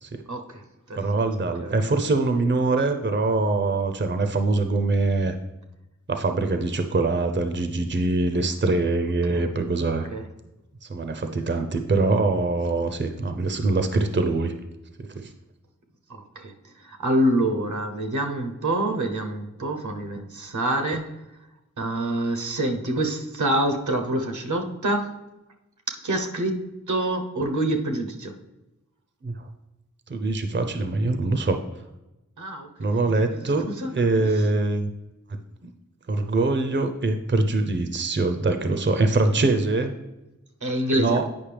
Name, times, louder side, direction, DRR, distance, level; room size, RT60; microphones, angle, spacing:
voice 1, 0.3-0.6 0.9-1.0 1.4-1.7 9.3-9.5 10.1-10.2 16.1-16.5 16.8-21.1 21.8-25.1 25.9-28.3 32.4-32.7 33.3-33.4 33.8-34.3 40.6-41.2, right 1 dB, 75° right, 4 dB, 0.9 m, -26 dB
voice 2, 0.9-5.4 6.1-10.1 10.8-14.5 15.0-15.3 29.2-29.5 30.1-31.6 32.8-34.9 35.6-35.7 36.1-39.9 41.0-41.3, right 3 dB, 40° right, 7 dB, 0.6 m, -23 dB
8.7 x 5.3 x 3.3 m, 0.98 s
wide cardioid pair, 50°, 30 cm